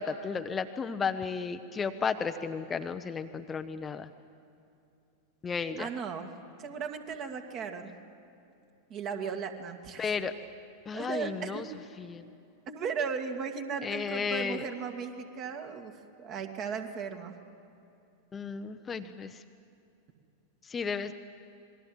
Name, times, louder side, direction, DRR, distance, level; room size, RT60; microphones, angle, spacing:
voice 1, 0.0-4.1 5.4-5.9 10.0-10.3 10.9-11.6 12.0-12.3 13.8-14.7 18.3-19.4 20.6-21.1, left 5 dB, 20° left, 8 dB, 0.8 m, -33 dB
voice 2, 5.8-6.3 6.6-7.9 8.9-10.1 10.9-11.6 12.7-15.9 16.2-17.3, right 6 dB, 35° right, 5 dB, 2.1 m, -36 dB
27.5 x 21.5 x 7.8 m, 2.7 s
figure-of-eight pair, 90°, 0 cm